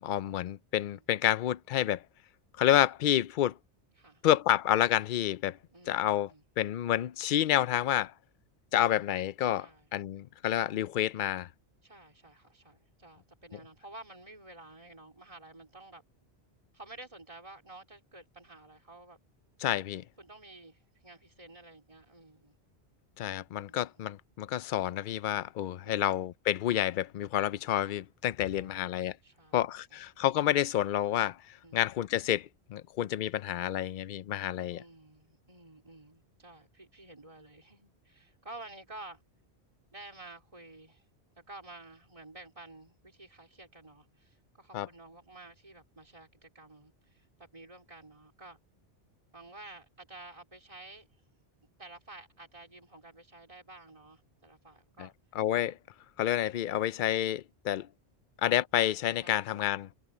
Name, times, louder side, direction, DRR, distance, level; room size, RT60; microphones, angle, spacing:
voice 1, 0.0-2.0 2.6-3.6 4.2-5.6 5.9-6.3 6.6-8.1 8.7-11.5 19.6-20.0 23.2-29.2 29.5-34.8 44.7-44.9 55.0-55.1 55.3-55.8 56.2-57.9 58.4-59.9, left 12 dB, 60° left, 0.6 m, -29 dB
voice 2, 5.7-6.4 9.6-9.9 11.8-16.0 16.7-19.2 20.2-22.6 23.7-24.1 25.8-26.1 28.6-28.8 29.2-30.0 31.6-31.8 34.8-39.2 39.9-41.1 41.4-48.6 49.3-51.1 51.8-55.1 59.2-59.6, right 2 dB, 30° right, 4.1 m, -51 dB
omnidirectional pair, 1.1 m